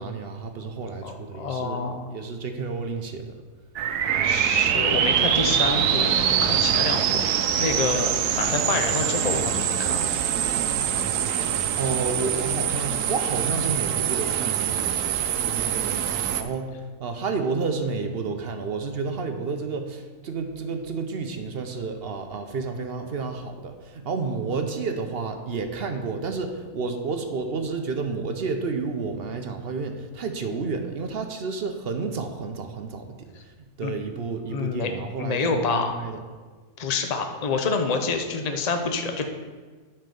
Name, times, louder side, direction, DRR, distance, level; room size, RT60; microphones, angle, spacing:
voice 1, 0.0-1.8 2.1-3.3 11.8-36.2, right 4 dB, 50° right, 6 dB, 0.8 m, -31 dB
voice 2, 1.0-2.1 4.2-10.1 33.8-33.9 34.5-34.9 35.2-36.0 36.8-39.3, left 4 dB, 35° left, 5 dB, 0.7 m, -27 dB
sound 1, 3.8-16.4, right 9 dB, 85° right, 1.2 m, -24 dB
9.7 x 4.5 x 6.8 m, 1.4 s
omnidirectional pair, 1.6 m